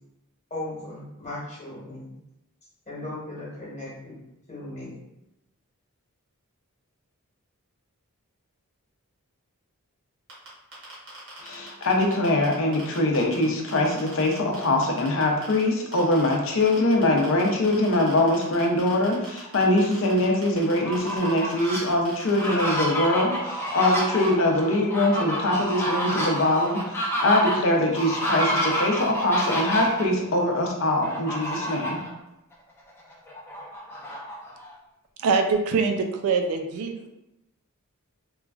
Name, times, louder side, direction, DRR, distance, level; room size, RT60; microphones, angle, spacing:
voice 1, 0.5-2.2 2.9-4.1 4.5-4.9, left 1 dB, 30° left, -7 dB, 1.1 m, -37 dB
sound 1, 10.3-13.4 13.7-15.6 15.9-22.6, right 2 dB, 60° right, 1.1 m, -42 dB
voice 2, 11.4-32.0, left 1 dB, 60° left, 1 dB, 0.5 m, -23 dB
Fowl, 20.7-21.8 22.3-30.0 31.0-32.1 32.5-32.6 33.0-34.7, equal, 10° left, 0.5 m, -29 dB
voice 3, 35.2-37.2, right 4 dB, 75° right, 5 dB, 0.3 m, -24 dB
3.0 x 2.3 x 2.3 m, 0.89 s
head